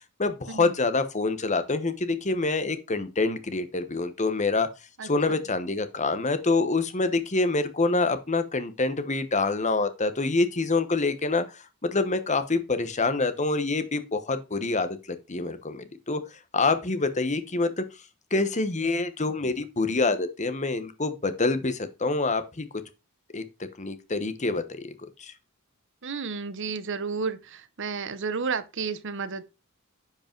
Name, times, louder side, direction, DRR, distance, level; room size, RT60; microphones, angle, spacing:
voice 1, 0.2-4.7 5.0-16.2 16.5-17.8 18.3-22.7 23.3-23.4 23.8-25.3, left 3 dB, 35° left, 1.2 m, -26 dB
voice 2, 5.0-5.4 26.0-29.4, right 5 dB, 60° right, 0.9 m, -32 dB
10.5 x 5.2 x 4.6 m
head